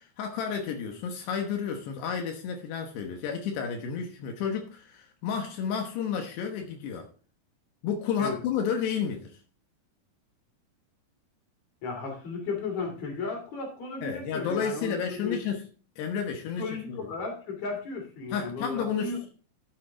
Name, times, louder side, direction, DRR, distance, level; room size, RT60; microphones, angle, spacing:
voice 1, 0.0-7.1 7.8-9.4 14.0-15.6 16.0-17.0 18.3-19.3, left 7 dB, 85° left, 3 dB, 3.3 m, -31 dB
voice 2, 11.8-15.4 16.6-19.2, left 4 dB, 45° left, 2 dB, 3.9 m, -35 dB
11.5 x 7.5 x 3.7 m, 0.40 s
omnidirectional pair, 4.7 m